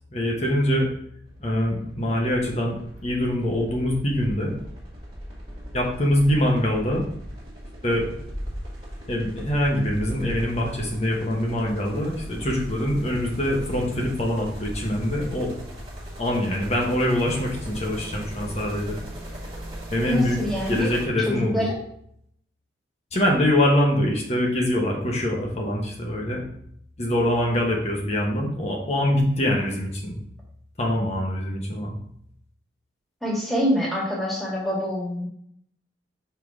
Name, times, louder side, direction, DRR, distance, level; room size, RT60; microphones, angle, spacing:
voice 1, 0.1-0.9 1.4-4.5 5.7-7.1 7.8-8.1 9.1-15.5 16.2-19.0 19.9-20.4 20.7-21.6 23.1-26.4 27.0-30.2 30.8-32.0, left 1 dB, 35° left, -1 dB, 1.3 m, -24 dB
sound 1, 1.3-21.1, equal, 30° right, 1.9 m, -38 dB
voice 2, 20.0-20.9 21.2-21.8 33.2-35.3, equal, ahead, -5 dB, 1.7 m, -25 dB
5.8 x 3.9 x 4.9 m, 0.69 s
head